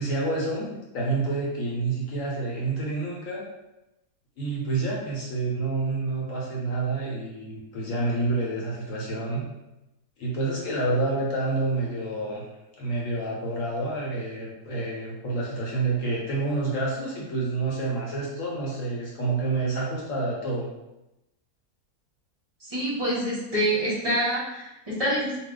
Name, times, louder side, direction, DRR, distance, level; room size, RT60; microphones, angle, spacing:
voice 1, 0.0-3.4 4.4-9.4 10.2-12.4 12.8-20.7, right 3 dB, 65° left, -4 dB, 1.1 m, -28 dB
voice 2, 22.6-25.4, right 1 dB, 30° right, -7 dB, 0.8 m, -26 dB
2.5 x 2.4 x 3.7 m, 0.94 s
omnidirectional pair, 1.6 m